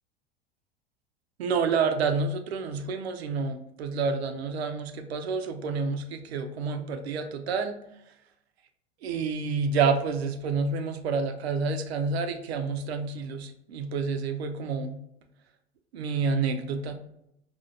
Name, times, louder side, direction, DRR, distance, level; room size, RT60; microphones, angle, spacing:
voice 1, 1.4-7.8 9.0-15.0 15.9-16.9, right 5 dB, 75° right, 6 dB, 0.6 m, -29 dB
4.2 x 2.4 x 2.4 m, 0.78 s
hypercardioid pair, 85°, 32 cm